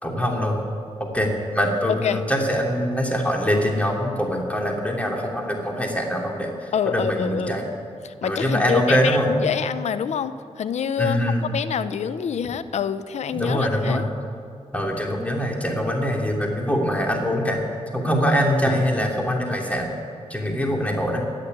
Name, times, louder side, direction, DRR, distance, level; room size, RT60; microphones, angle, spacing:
voice 1, 0.0-0.6 1.0-7.7 8.2-9.3 11.0-11.5 13.3-14.1 14.7-17.6 17.9-19.9 20.3-21.2, equal, 10° left, 0 dB, 3.0 m, -23 dB
voice 2, 1.9-2.2 6.7-7.6 8.0-14.0, left 7 dB, 75° left, 13 dB, 0.6 m, -26 dB
17.0 x 6.7 x 9.6 m, 2.4 s
cardioid pair, 55°, 12 cm